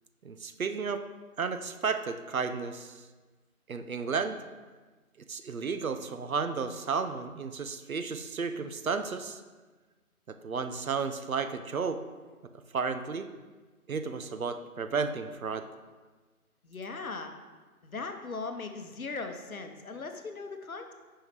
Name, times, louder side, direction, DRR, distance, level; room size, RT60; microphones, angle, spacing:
voice 1, 0.2-1.0 1.4-3.0 3.7-4.4 5.3-9.4 10.3-12.0 12.7-13.3 13.9-15.7, right 5 dB, 65° right, 9 dB, 0.6 m, -33 dB
voice 2, 16.6-17.3 17.8-20.9, left 4 dB, 70° left, 6 dB, 0.9 m, -39 dB
8.2 x 5.6 x 3.2 m, 1.3 s
figure-of-eight pair, 165°, 44 cm